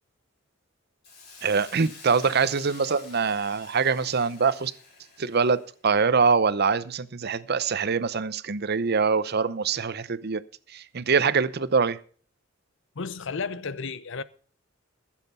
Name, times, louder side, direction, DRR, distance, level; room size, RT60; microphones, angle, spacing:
Hiss, 1.0-5.8, left 3 dB, 50° left, 4.4 m, -48 dB
voice 1, 1.4-4.7 5.2-10.4 10.7-12.0, right 5 dB, 55° right, 0.7 m, -24 dB
voice 2, 13.0-14.2, left 4 dB, 65° left, 0.7 m, -33 dB
15.0 x 7.4 x 5.5 m
head